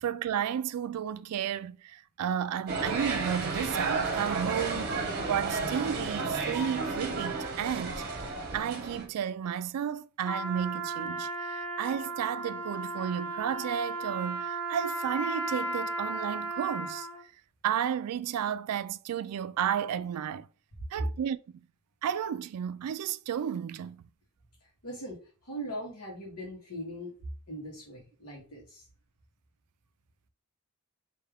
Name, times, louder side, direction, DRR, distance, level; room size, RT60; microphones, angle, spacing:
voice 1, 0.0-17.1 17.6-20.5 20.9-21.4 22.0-24.0, right 9 dB, 85° right, 0.3 m, -33 dB
sound 1, 2.7-9.0, right 3 dB, 45° right, 0.9 m, -32 dB
Trumpet, 10.2-17.2, right 2 dB, 10° left, 0.7 m, -35 dB
voice 2, 24.6-25.2 25.4-27.1 27.5-28.9, equal, 85° left, 1.3 m, -40 dB
3.4 x 2.7 x 3.5 m
head